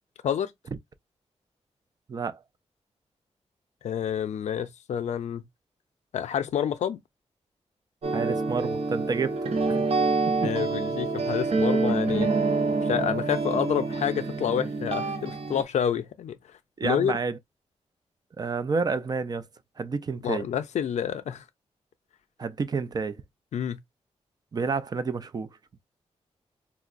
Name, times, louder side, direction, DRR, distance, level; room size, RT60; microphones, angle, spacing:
voice 1, 2.1-2.4 8.1-9.4 9.7-9.9 10.4-10.5 16.8-17.4 18.4-19.4 19.8-20.4 22.4-23.2 24.5-25.5, right 4 dB, 35° right, 0.4 m, -29 dB
voice 2, 3.8-5.5 6.1-7.0 10.4-12.3 12.8-16.4 16.8-17.2 20.2-21.4 23.5-23.8, left 9 dB, 90° left, 0.4 m, -28 dB
sound 1, 8.0-15.6, right 3 dB, 60° right, 0.8 m, -27 dB
4.5 x 2.0 x 2.5 m
wide cardioid pair, 145°, 11 cm